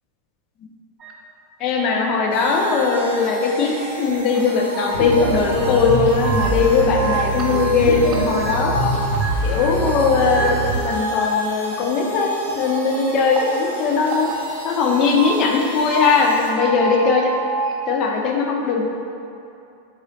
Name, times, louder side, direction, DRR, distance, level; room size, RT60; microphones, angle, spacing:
sound 1, 1.0-1.1 1.8-4.0 4.3-5.2 5.5-8.8 9.1-14.4 15.0-15.3 15.7-17.7, right 3 dB, 30° right, 0.4 m, -29 dB
voice 1, 1.6-8.9 9.4-14.3 14.6-17.3 17.9-18.8, left 4 dB, 40° left, 0 dB, 0.4 m, -19 dB
sound 2, 2.3-16.5, right 1 dB, 75° right, 0.6 m, -37 dB
sound 3, 4.9-10.7, right 1 dB, 65° left, 1.2 m, -23 dB
3.6 x 3.0 x 2.7 m, 2.6 s
figure-of-eight pair, 90°, 0 cm